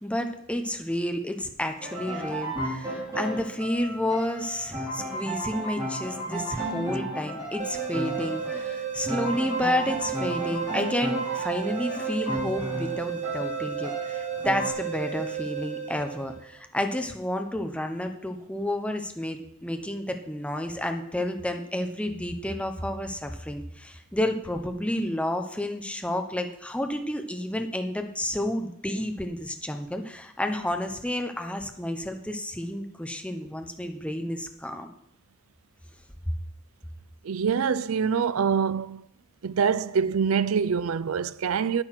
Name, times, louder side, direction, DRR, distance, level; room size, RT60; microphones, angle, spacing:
voice 1, 0.0-34.9, left 1 dB, 5° left, 0.9 m, -31 dB
sound 1, 1.8-14.7, right 1 dB, 15° right, 5.2 m, -34 dB
sound 2, 7.6-16.5, right 9 dB, 35° right, 1.0 m, -33 dB
voice 2, 37.2-39.0 39.4-41.8, right 6 dB, 80° right, 0.5 m, -25 dB
9.6 x 8.9 x 5.9 m
head